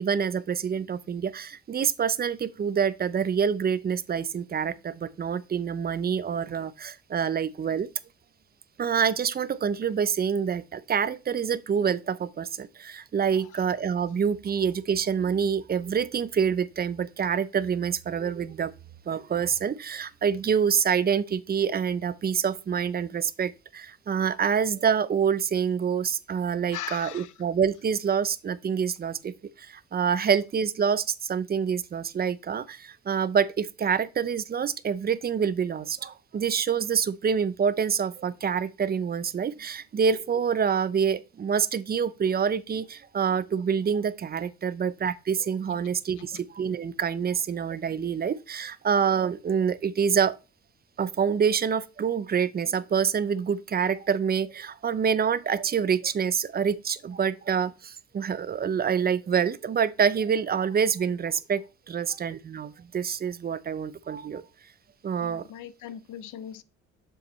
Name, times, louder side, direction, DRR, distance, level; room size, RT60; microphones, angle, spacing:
voice 1, 0.0-7.9 8.8-18.7 19.1-50.4 51.0-64.4 65.0-65.5, right 7 dB, 30° right, 0.5 m, -26 dB
voice 2, 26.7-27.3 45.7-45.8 46.2-46.4 65.2-66.6, left 10 dB, 80° left, 0.7 m, -39 dB
7.1 x 6.8 x 3.1 m
cardioid pair, 90°, 30 cm